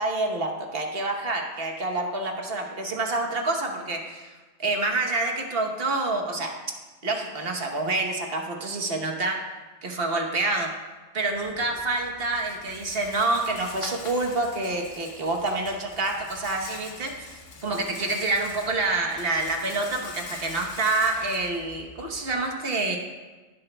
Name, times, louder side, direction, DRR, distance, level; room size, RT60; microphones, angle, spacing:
voice 1, 0.0-4.3 4.6-6.5 7.0-9.4 9.8-10.7 11.1-17.1 17.6-23.0, right 2 dB, 55° right, 2 dB, 1.3 m, -27 dB
Rattle, 11.3-22.4, left 4 dB, 80° left, 1.3 m, -44 dB
15.5 x 7.9 x 2.3 m, 1.3 s
omnidirectional pair, 1.2 m